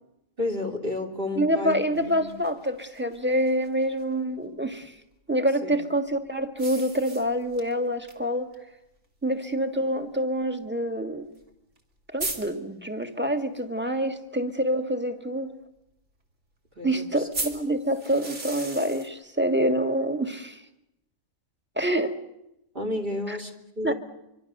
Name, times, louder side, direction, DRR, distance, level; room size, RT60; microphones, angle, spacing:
voice 1, 0.4-2.4 5.6-5.7 16.8-17.3 22.7-23.9, left 2 dB, 40° right, 7 dB, 2.9 m, -31 dB
voice 2, 1.4-4.9 5.3-8.5 9.2-11.3 12.1-15.5 16.8-20.6 21.8-22.1 23.3-23.4 23.8-23.9, right 1 dB, 10° right, 6 dB, 1.6 m, -26 dB
sound 1, 1.9-4.0 6.6-7.7 8.1-8.2 8.5-8.6 9.6-9.7 11.4-11.5 11.8-11.9 12.2-12.4 17.3-19.1, right 2 dB, 60° right, 3.1 m, -36 dB
25.0 x 24.5 x 6.6 m, 0.87 s
omnidirectional pair, 1.4 m